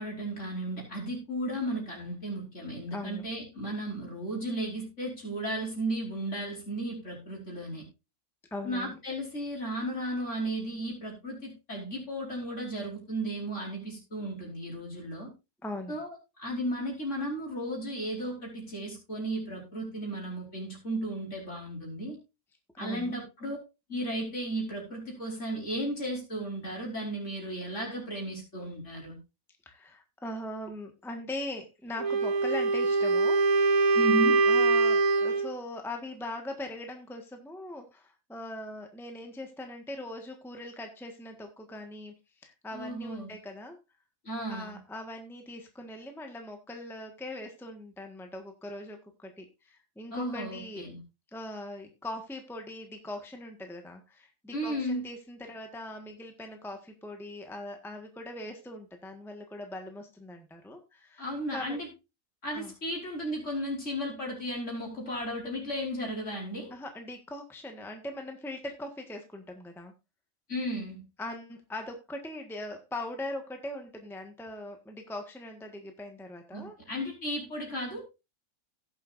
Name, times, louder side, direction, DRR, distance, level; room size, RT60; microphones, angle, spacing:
voice 1, 0.0-7.8 8.6-15.3 15.9-22.2 22.8-23.6 23.9-29.2 33.9-34.5 42.7-43.3 44.2-44.8 50.1-51.0 54.5-55.0 61.2-61.9 62.4-66.7 70.5-71.0 76.5-78.0, right 1 dB, 55° left, -1 dB, 5.2 m, -34 dB
voice 2, 2.9-3.3 8.5-9.0 15.6-16.0 22.7-23.1 29.6-33.4 33.7-34.0 34.5-42.1 42.4-43.8 44.5-50.9 51.3-61.8 62.5-62.7 66.7-69.9 71.2-76.8, left 1 dB, ahead, 4 dB, 1.4 m, -41 dB
Wind instrument woodwind instrument, 32.0-35.5, right 3 dB, 70° right, 1.6 m, -23 dB
17.5 x 7.3 x 2.6 m, 0.26 s
omnidirectional pair, 1.5 m